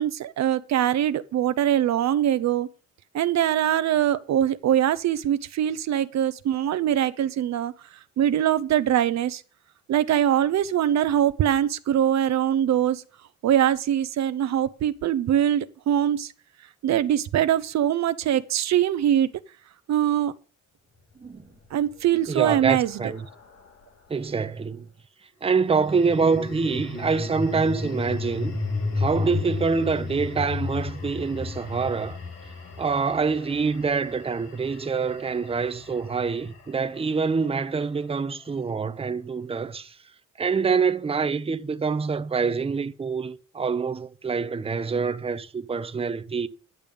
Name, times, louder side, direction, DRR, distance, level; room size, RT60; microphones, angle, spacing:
voice 1, 0.0-2.7 3.1-7.7 8.2-9.4 9.9-13.0 13.4-16.3 16.8-19.3 19.9-20.3 21.7-23.1, right 10 dB, 60° right, 0.7 m, -23 dB
sound 1, 21.4-23.9 25.5-37.8, left 3 dB, 60° left, 4.3 m, -34 dB
voice 2, 22.3-23.3 24.1-24.9 25.4-28.6 29.0-32.2 32.8-40.0 40.4-46.5, right 5 dB, 20° right, 0.7 m, -26 dB
11.0 x 6.8 x 5.2 m
cardioid pair, 90°, 30 cm